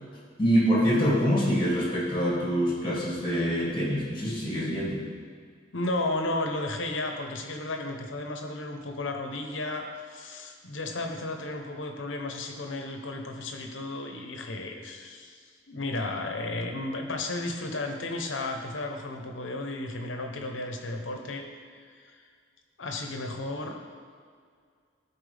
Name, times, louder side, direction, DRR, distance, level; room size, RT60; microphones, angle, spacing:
voice 1, 0.4-5.0, equal, 25° left, -5 dB, 2.0 m, -25 dB
voice 2, 5.7-15.4 15.7-21.4 21.9-22.2 22.8-23.8, left 2 dB, 85° left, 3 dB, 0.9 m, -33 dB
13.0 x 4.4 x 3.4 m, 2.1 s
head